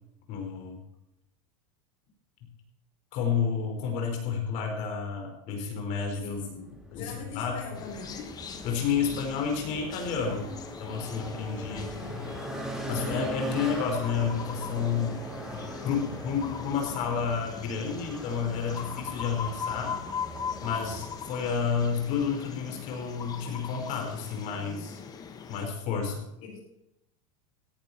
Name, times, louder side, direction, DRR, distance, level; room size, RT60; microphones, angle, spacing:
voice 1, 0.3-0.8 3.1-7.6 8.6-10.5 10.8-12.3 12.9-15.2 15.5-19.9 20.6-25.0 25.5-26.3, left 6 dB, 45° left, 3 dB, 5.0 m, -31 dB
voice 2, 6.2-6.7 6.9-8.3 11.7-12.2 26.4-26.6, left 4 dB, 70° left, -5 dB, 7.0 m, -42 dB
sound 1, 6.3-23.6, equal, 5° right, 5.1 m, -41 dB
sound 2, 7.7-25.7, left 6 dB, 20° left, 1.4 m, -41 dB
17.0 x 10.5 x 4.4 m, 0.86 s
supercardioid pair, 155°, 18 cm